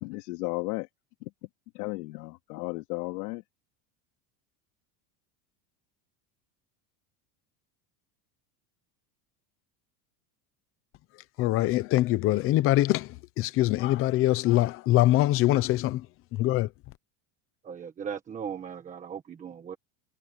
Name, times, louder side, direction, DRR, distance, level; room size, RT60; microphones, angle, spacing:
voice 1, 0.0-0.9 1.7-3.4, left 23 dB, 75° left, 2.5 m, -34 dB
voice 2, 11.4-16.1 16.3-16.7, left 16 dB, 30° left, 0.7 m, -23 dB
voice 3, 17.6-19.8, right 7 dB, 15° right, 1.4 m, -38 dB
cardioid pair, 180°, 47 cm